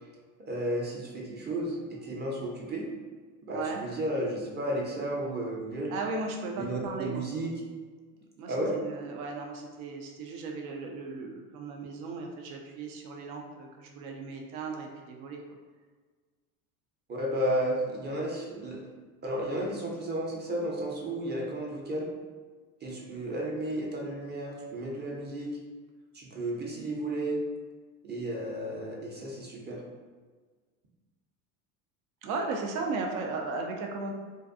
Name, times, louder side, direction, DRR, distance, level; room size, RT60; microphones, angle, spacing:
voice 1, 0.4-2.9 3.4-5.9 6.6-7.5 8.5-8.8 17.1-18.8 19.2-22.1 22.8-25.6 26.1-27.5 28.0-29.8, right 1 dB, 25° right, -2 dB, 0.6 m, -33 dB
voice 2, 3.5-3.8 5.9-7.2 8.4-15.4 32.2-34.1, right 3 dB, 75° right, 2 dB, 0.6 m, -36 dB
2.5 x 2.2 x 2.5 m, 1.4 s
hypercardioid pair, 90°, 43 cm